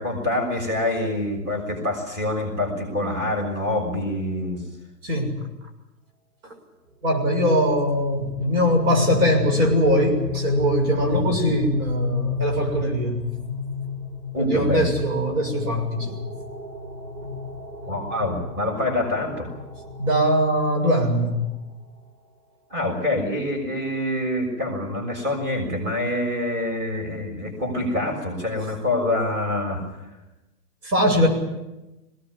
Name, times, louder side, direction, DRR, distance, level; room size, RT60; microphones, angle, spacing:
voice 1, 0.0-4.6 11.1-11.5 14.3-14.9 17.9-19.5 22.7-29.8 31.2-31.3, left 1 dB, 20° right, 3 dB, 6.4 m, -26 dB
voice 2, 5.0-5.5 6.4-6.6 7.0-13.2 14.4-16.2 17.2-17.3 20.0-21.4 30.8-31.3, equal, 60° right, 2 dB, 7.1 m, -21 dB
sound 1, 7.2-22.0, left 4 dB, 80° right, 3.9 m, -32 dB
21.0 x 18.5 x 9.8 m, 1.0 s
hypercardioid pair, 130°, 48 cm